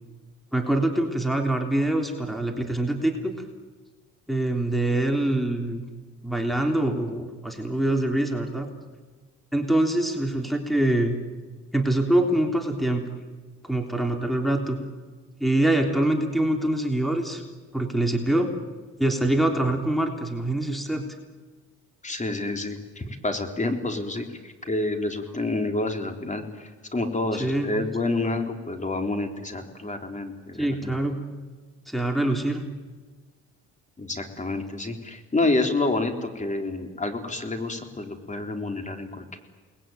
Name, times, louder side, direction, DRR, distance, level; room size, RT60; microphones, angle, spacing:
voice 1, 0.5-3.3 4.3-5.8 6.2-8.7 9.5-11.2 11.7-13.0 13.6-14.8 15.4-17.4 17.7-18.5 19.0-21.0 27.4-27.8 30.6-31.2 31.9-32.7, right 1 dB, ahead, 3 dB, 3.4 m, -24 dB
voice 2, 22.0-30.9 34.0-39.4, left 2 dB, 25° left, 5 dB, 3.9 m, -28 dB
29.0 x 20.5 x 9.2 m, 1.4 s
cardioid pair, 90°, 30 cm